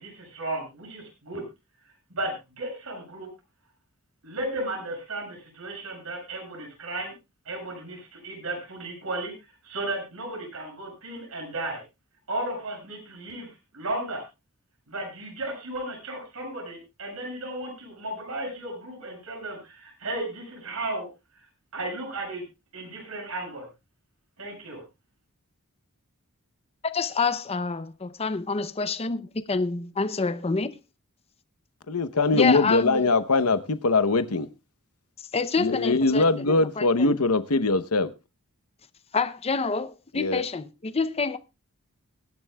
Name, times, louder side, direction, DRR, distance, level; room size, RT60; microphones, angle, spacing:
voice 1, 0.0-1.4 2.1-3.3 4.2-7.1 7.5-9.3 9.6-11.8 12.3-14.2 14.9-21.1 21.7-22.4 22.7-23.7 24.4-24.8, right 2 dB, 75° right, 7.3 m, -34 dB
voice 2, 26.8-30.8 32.3-33.1 35.3-37.2 39.1-41.4, left 4 dB, 30° left, 0.6 m, -27 dB
voice 3, 31.9-34.5 35.6-38.1 40.1-40.4, left 3 dB, 80° left, 0.9 m, -22 dB
23.0 x 11.0 x 2.3 m
head